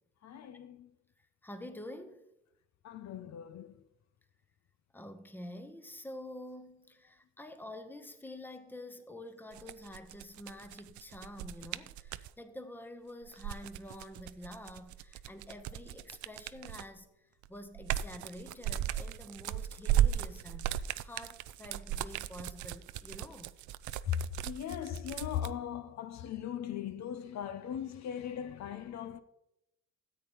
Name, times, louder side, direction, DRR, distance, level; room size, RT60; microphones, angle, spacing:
voice 1, 0.2-0.9 2.8-3.8 24.1-24.2 24.4-29.2, left 9 dB, 65° left, 0.7 m, -38 dB
voice 2, 1.4-2.3 4.9-17.1 17.5-23.5, left 1 dB, 5° left, 0.9 m, -48 dB
sound 1, 9.5-12.3 13.2-17.0 17.4-25.5, right 11 dB, 75° right, 0.5 m, -36 dB
13.0 x 8.6 x 3.0 m
cardioid pair, 90°, 30 cm